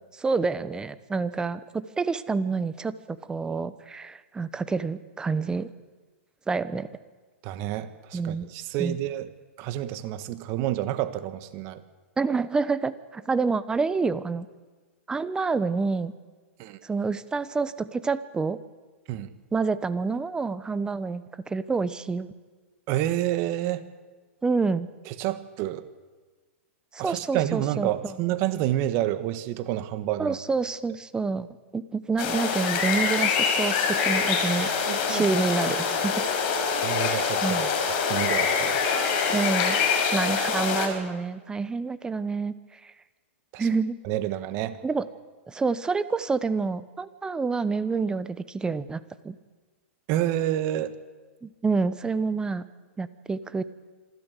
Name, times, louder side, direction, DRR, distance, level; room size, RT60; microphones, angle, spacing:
voice 1, 0.1-5.7 6.5-6.9 8.1-8.5 8.8-9.0 12.2-14.5 15.1-16.1 16.8-18.6 19.5-22.3 24.4-24.9 26.9-28.1 30.2-31.5 31.7-34.7 35.1-36.2 37.4-37.7 39.3-42.5 42.8-42.9 43.6-44.0 44.8-45.1 45.5-49.4 51.4-52.6 53.0-53.6, right 4 dB, 10° right, 14 dB, 0.9 m, -28 dB
voice 2, 7.4-9.3 9.6-11.8 16.6-16.8 19.1-19.3 22.9-23.8 25.1-25.8 27.0-30.4 34.6-35.3 36.8-38.8 43.5-43.7 44.0-44.8 50.1-50.9, right 13 dB, 40° right, 11 dB, 1.5 m, -29 dB
sound 1, 32.2-40.9, left 6 dB, 50° left, 5.1 m, -25 dB
26.5 x 12.5 x 8.2 m, 1.3 s
hypercardioid pair, 125°, 7 cm